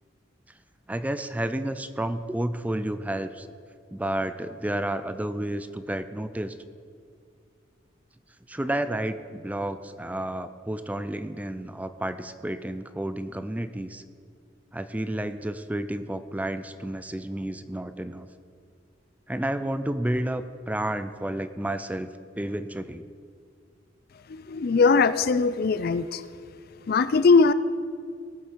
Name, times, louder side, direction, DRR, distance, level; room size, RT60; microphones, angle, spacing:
voice 1, 0.9-3.5 3.9-6.6 8.5-14.0 14.7-18.3 19.3-22.1 22.3-23.0, right 1 dB, 10° right, 11 dB, 0.4 m, -31 dB
voice 2, 24.3-26.2 26.9-27.5, left 4 dB, 50° left, 14 dB, 0.5 m, -20 dB
18.5 x 8.4 x 4.6 m, 2.3 s
head